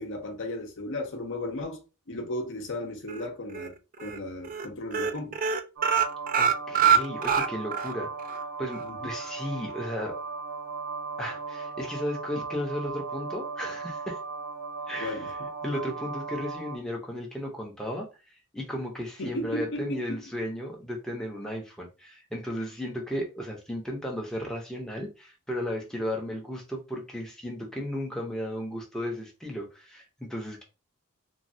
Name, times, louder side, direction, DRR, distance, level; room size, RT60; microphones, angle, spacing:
voice 1, 0.0-1.8 2.1-5.4 8.8-9.1 15.0-15.5 19.2-20.2, left 1 dB, 55° left, 0.7 m, -35 dB
sound 1, 3.1-3.7 4.0-4.2 4.4-4.7 4.9-7.9 8.3-8.4 8.7-8.8, right 7 dB, 40° right, 0.3 m, -24 dB
sound 2, 5.8-16.8, right 4 dB, 70° right, 1.1 m, -37 dB
voice 2, 6.4-8.1 8.6-10.2 11.2-14.2 14.9-15.2 15.6-18.1 18.5-30.6, left 1 dB, 5° left, 0.6 m, -34 dB
3.1 x 2.3 x 2.6 m
head